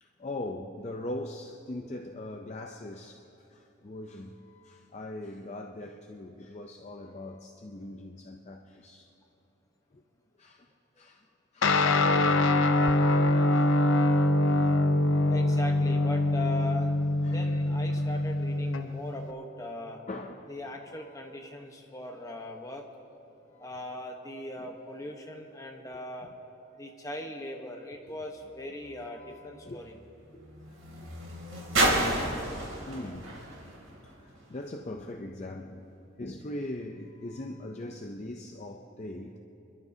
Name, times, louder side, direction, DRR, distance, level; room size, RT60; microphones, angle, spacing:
voice 1, 0.0-9.1 10.4-10.7 11.0-11.3 11.5-12.2 12.7-13.8 14.1-14.3 14.8-15.3 16.4-16.5 17.2-17.5 17.9-18.0 20.1-20.5 23.6-23.8 29.1-30.0 32.9-33.3 33.6-33.7 34.0-39.4, left 1 dB, 35° left, 0.5 m, -41 dB
Guitar, 11.6-19.3, left 2 dB, 75° left, 0.6 m, -24 dB
voice 2, 15.3-16.9 17.3-20.0 20.5-22.8 23.6-26.3 26.8-29.9 30.3-30.4, left 1 dB, 15° left, 1.0 m, -39 dB
sound 1, 28.2-34.7 35.5-35.6, right 1 dB, 85° right, 3.0 m, -32 dB
27.5 x 12.0 x 2.8 m
head